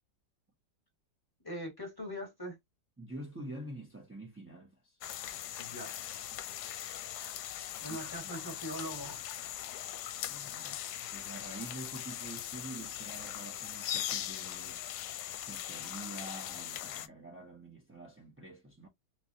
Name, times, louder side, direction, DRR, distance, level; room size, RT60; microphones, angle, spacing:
voice 1, 1.4-2.6 5.6-6.0 7.2-7.3 7.8-9.2, equal, 15° left, 1.2 m, -41 dB
voice 2, 3.0-5.0 7.9-8.0 10.3-10.8 11.1-14.8 15.5-18.9, right 2 dB, 15° right, 0.4 m, -47 dB
sound 1, 5.0-17.1, left 11 dB, 75° left, 1.1 m, -40 dB
3.4 x 3.1 x 2.7 m
omnidirectional pair, 1.9 m